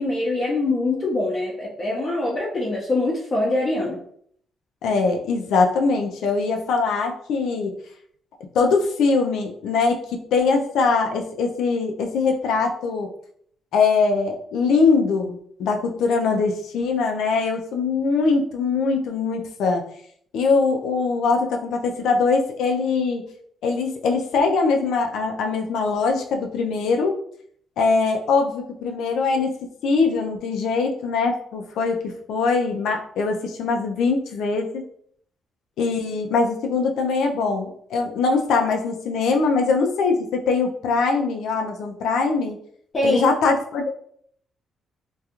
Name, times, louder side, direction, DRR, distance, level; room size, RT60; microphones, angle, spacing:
voice 1, 0.0-4.0 42.9-43.2, left 2 dB, 35° left, -5 dB, 0.6 m, -23 dB
voice 2, 4.8-7.8 8.5-13.1 13.7-19.9 20.3-23.3 23.6-27.2 27.8-29.5 29.8-34.8 35.8-42.6 43.0-43.9, left 4 dB, 80° left, 3 dB, 0.4 m, -22 dB
2.3 x 2.2 x 2.9 m, 0.63 s
cardioid pair, 90°, 0 cm